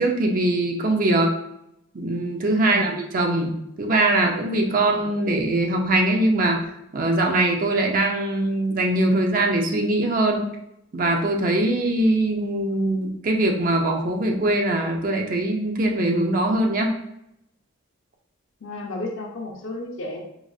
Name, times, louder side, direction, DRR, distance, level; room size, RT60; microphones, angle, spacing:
voice 1, 0.0-1.3 1.9-10.5 10.9-17.0, right 2 dB, 40° right, 2 dB, 0.5 m, -22 dB
voice 2, 2.6-3.0 4.9-5.0 18.6-20.2, left 2 dB, 75° left, 0 dB, 0.6 m, -33 dB
4.7 x 2.4 x 2.3 m, 0.80 s
head